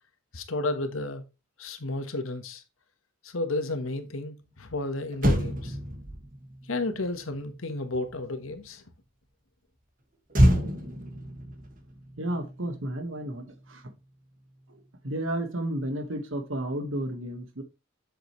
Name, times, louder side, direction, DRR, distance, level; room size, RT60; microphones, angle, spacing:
voice 1, 0.3-1.2 1.6-2.6 3.2-5.8 6.7-8.8, left 2 dB, 90° left, 1.3 m, -32 dB
Motor vehicle (road), 4.7-4.8 5.1-8.7 10.3-12.9 13.2-13.4, equal, 40° right, 1.8 m, -28 dB
voice 2, 12.2-13.8 15.0-17.6, right 1 dB, 75° right, 1.7 m, -32 dB
7.8 x 6.6 x 3.2 m
head